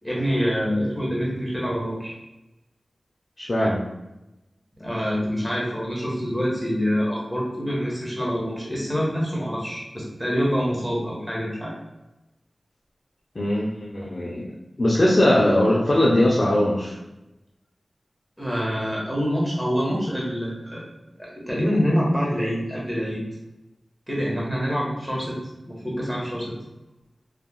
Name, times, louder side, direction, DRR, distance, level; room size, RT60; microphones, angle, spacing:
voice 1, 0.0-2.1 4.7-11.7 18.4-20.8 21.2-23.2 24.1-25.4 25.6-26.5, equal, 5° right, -5 dB, 1.1 m, -26 dB
voice 2, 3.4-3.8 13.4-14.5 14.8-17.0, left 1 dB, 40° left, -6 dB, 0.5 m, -20 dB
3.3 x 2.4 x 2.2 m, 0.97 s
wide cardioid pair, 75°, 0 cm